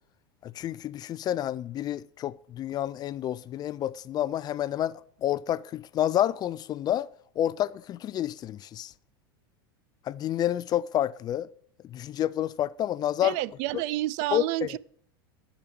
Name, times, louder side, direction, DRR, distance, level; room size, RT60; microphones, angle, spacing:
voice 1, 0.4-7.1 7.4-8.9 10.1-11.5 11.9-13.4 14.3-14.7, left 12 dB, 30° left, 0.4 m, -29 dB
voice 2, 13.2-14.8, right 16 dB, 55° right, 0.4 m, -29 dB
10.0 x 5.1 x 6.9 m
hypercardioid pair, 100°, 13 cm